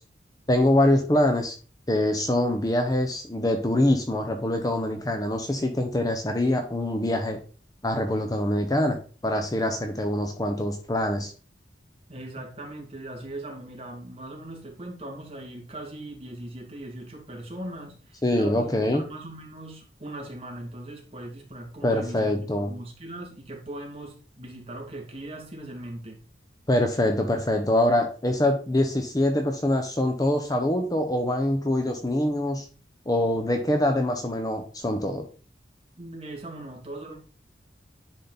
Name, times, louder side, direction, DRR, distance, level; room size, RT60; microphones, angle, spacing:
voice 1, 0.5-1.5 1.9-7.4 7.8-11.3 18.2-19.0 21.8-22.7 26.7-32.7 33.1-35.3, left 1 dB, 20° left, 0.9 m, -24 dB
voice 2, 12.1-22.3 22.6-26.2 36.0-37.2, right 1 dB, 35° right, 2.3 m, -39 dB
10.0 x 4.3 x 4.0 m
head